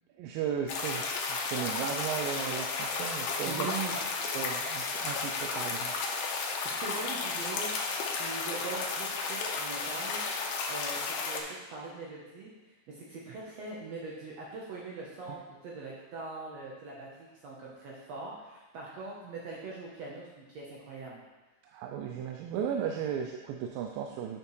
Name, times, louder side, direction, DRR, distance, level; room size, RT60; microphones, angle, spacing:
voice 1, 0.2-3.7 4.3-5.9 15.3-15.4 21.6-24.4, right 8 dB, 90° right, 3 dB, 2.3 m, -35 dB
sound 1, 0.7-11.4, left 4 dB, 90° left, 2.6 m, -33 dB
voice 2, 3.4-4.0 6.3-7.7 8.1-10.2 10.7-12.5 12.9-21.2, right 3 dB, 70° right, -4 dB, 1.7 m, -42 dB
8.5 x 5.8 x 3.2 m, 1.1 s
omnidirectional pair, 4.0 m